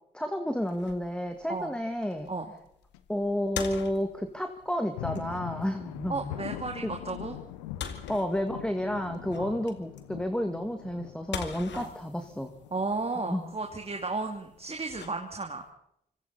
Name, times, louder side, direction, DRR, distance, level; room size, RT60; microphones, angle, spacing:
voice 1, 0.1-2.3 3.1-6.3 6.8-6.9 8.1-12.5 13.3-13.5, equal, 5° left, 6 dB, 2.0 m, -31 dB
sound 1, 0.6-15.7, left 7 dB, 65° left, 2.1 m, -45 dB
sound 2, 2.0-2.3 2.9-3.0 3.4-3.5 4.6-15.0, left 13 dB, 90° left, 1.0 m, -43 dB
voice 2, 6.1-7.4 9.3-9.5 11.8-11.9 12.7-15.6, right 3 dB, 30° right, 3 dB, 2.6 m, -34 dB
26.0 x 24.0 x 4.2 m, 0.74 s
hypercardioid pair, 40°, 20 cm